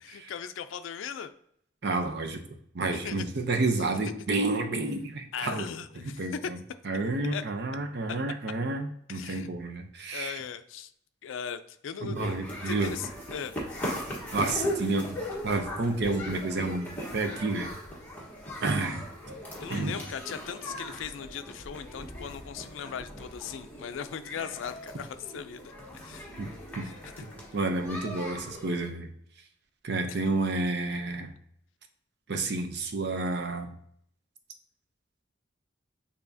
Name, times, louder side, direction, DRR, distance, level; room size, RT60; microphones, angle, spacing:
voice 1, 0.0-1.3 3.0-3.2 5.3-6.5 7.3-7.4 8.1-8.2 9.1-9.5 10.1-10.9 11.2-12.2 12.7-13.5 19.6-25.6 26.0-26.3 27.2-27.3, left 7 dB, 85° left, 9 dB, 0.4 m, -38 dB
voice 2, 1.8-2.4 2.7-5.7 6.0-6.6 6.8-10.4 12.0-13.0 14.3-15.2 15.4-17.7 18.6-19.0 19.7-20.0 26.4-26.9 27.5-29.1 29.8-31.3 32.3-33.7, right 2 dB, 60° right, 6 dB, 0.6 m, -30 dB
sound 1, 12.1-28.9, equal, 10° left, 1.3 m, -39 dB
6.9 x 2.8 x 2.7 m, 0.70 s
head